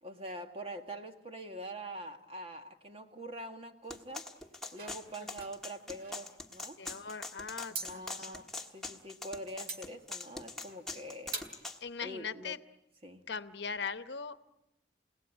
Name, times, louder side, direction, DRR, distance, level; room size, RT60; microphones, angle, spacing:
voice 1, 0.0-4.3 4.7-6.8 7.7-11.7 12.0-12.6 13.0-13.3, right 1 dB, 30° right, 5 dB, 1.8 m, -44 dB
sound 1, 3.9-11.8, left 3 dB, ahead, 1.4 m, -43 dB
sound 2, 4.7-6.2 7.7-7.9 9.6-9.8 10.7-10.9 11.3-11.6, right 4 dB, 50° right, 2.0 m, -43 dB
voice 2, 6.8-8.4 11.8-12.6 13.3-14.5, left 5 dB, 75° left, 12 dB, 0.9 m, -40 dB
29.5 x 17.5 x 9.8 m, 0.90 s
head